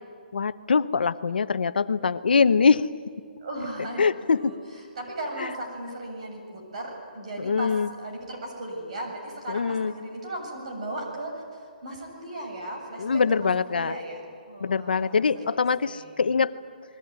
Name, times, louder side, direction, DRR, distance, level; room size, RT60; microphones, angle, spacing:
voice 1, 0.3-2.9 4.0-4.5 5.4-5.5 7.4-7.9 9.5-9.9 13.0-13.9 14.6-16.5, left 5 dB, 75° left, 12 dB, 0.9 m, -23 dB
voice 2, 3.4-7.7 8.0-16.1, right 1 dB, 40° right, 1 dB, 7.4 m, -37 dB
30.0 x 20.5 x 9.6 m, 2.2 s
hypercardioid pair, 180°, 5 cm